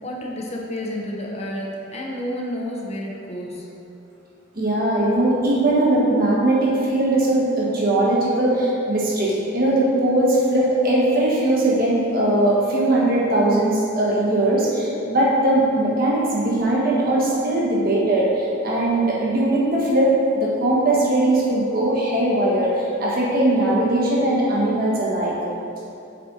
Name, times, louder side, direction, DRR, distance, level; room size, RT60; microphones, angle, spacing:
voice 1, 0.0-3.7, left 1 dB, 30° left, -2 dB, 0.8 m, -30 dB
voice 2, 4.5-25.3, right 1 dB, 45° right, -5 dB, 1.5 m, -20 dB
7.5 x 4.4 x 4.0 m, 2.7 s
head